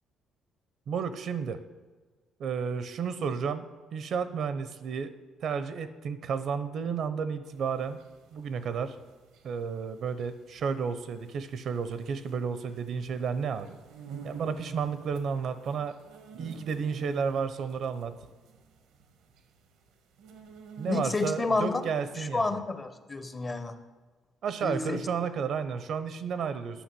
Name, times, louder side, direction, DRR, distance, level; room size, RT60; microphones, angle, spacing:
voice 1, 0.9-1.6 2.4-3.7 3.9-5.1 5.4-8.0 8.3-9.0 9.4-13.8 14.2-16.0 16.4-18.1 20.8-22.6 24.4-26.8, right 6 dB, 55° right, 12 dB, 0.7 m, -32 dB
sound 1, 7.5-21.7, right 6 dB, 85° right, 1.2 m, -48 dB
voice 2, 20.9-21.8 22.3-23.7 24.6-25.0, left 3 dB, 20° left, 10 dB, 0.7 m, -30 dB
10.0 x 6.0 x 7.6 m, 1.3 s
cardioid pair, 140°, 0 cm